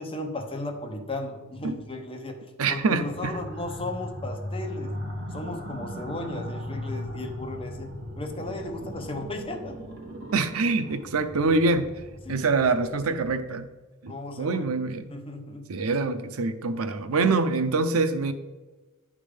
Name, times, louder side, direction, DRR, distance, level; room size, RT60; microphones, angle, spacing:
voice 1, 0.0-5.0 5.3-9.8 12.2-12.9 14.1-14.7 15.1-15.7, left 2 dB, 25° left, 3 dB, 0.9 m, -36 dB
voice 2, 2.6-3.4 10.3-11.9 12.3-13.7 14.0-15.1 15.7-18.3, right 3 dB, 80° right, 10 dB, 0.6 m, -25 dB
sound 1, 3.0-13.5, equal, 50° right, 1.7 m, -38 dB
10.5 x 3.6 x 5.0 m, 1.2 s
head